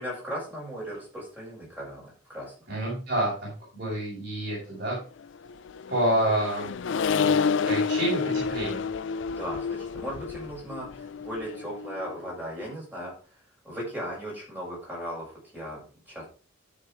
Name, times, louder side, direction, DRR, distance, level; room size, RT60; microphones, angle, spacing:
voice 1, 0.0-2.5 9.3-13.1 13.6-16.2, equal, 10° right, -4 dB, 6.7 m, -37 dB
voice 2, 2.7-5.0 5.9-6.7 7.1-7.4 7.7-8.8, right 1 dB, 50° right, -7 dB, 5.8 m, -28 dB
Accelerating revving vroom, 5.4-12.1, left 5 dB, 65° left, 0.4 m, -29 dB
13.5 x 6.7 x 3.7 m, 0.35 s
head